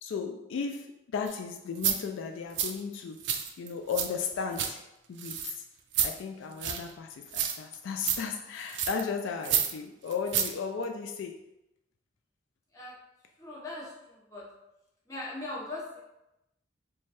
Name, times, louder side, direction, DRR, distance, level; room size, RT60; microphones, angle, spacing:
voice 1, 0.0-3.2 3.6-4.8 5.1-5.6 6.0-11.4, left 5 dB, 80° left, 4 dB, 0.3 m, -35 dB
sound 1, 1.3-1.4 1.7-1.9 2.5-2.7 3.2-4.1 4.3-4.7 5.2-5.5 5.9-6.1 6.6-6.9 7.3-7.7 8.0-8.2 8.7-9.0 9.4-9.7 10.1-10.5 10.8-10.9, right 9 dB, 65° right, 0.4 m, -29 dB
voice 2, 13.4-14.4 15.1-16.0, left 2 dB, 15° left, -6 dB, 0.9 m, -40 dB
3.1 x 2.3 x 4.2 m, 0.92 s
head